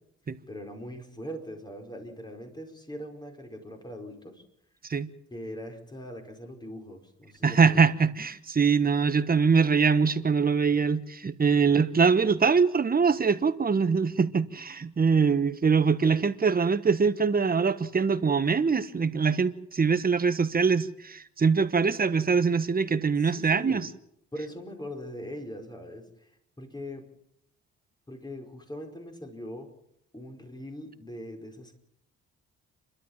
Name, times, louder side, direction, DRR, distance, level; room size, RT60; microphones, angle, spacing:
voice 1, 0.5-4.4 5.3-7.9 23.2-23.8 24.3-26.3 26.6-27.0 28.1-29.7 30.1-31.7, equal, 15° left, 3 dB, 5.1 m, -41 dB
voice 2, 7.4-23.8, right 5 dB, 30° right, 12 dB, 1.3 m, -23 dB
30.0 x 12.5 x 7.4 m, 0.75 s
cardioid pair, 90°, 30 cm